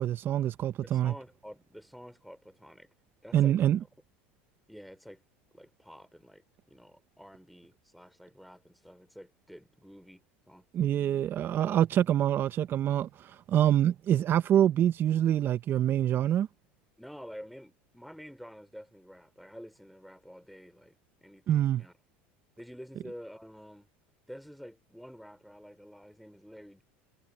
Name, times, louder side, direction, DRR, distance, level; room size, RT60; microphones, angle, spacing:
voice 1, 0.0-1.1 3.3-3.8 10.7-16.5 21.5-21.8, right 11 dB, 40° right, 0.5 m, -25 dB
voice 2, 0.8-2.9 3.2-3.8 4.7-5.2 5.5-10.7 17.0-21.9 22.6-23.9 24.3-26.8, equal, ahead, 2.9 m, -49 dB
supercardioid pair, 110°, 6 cm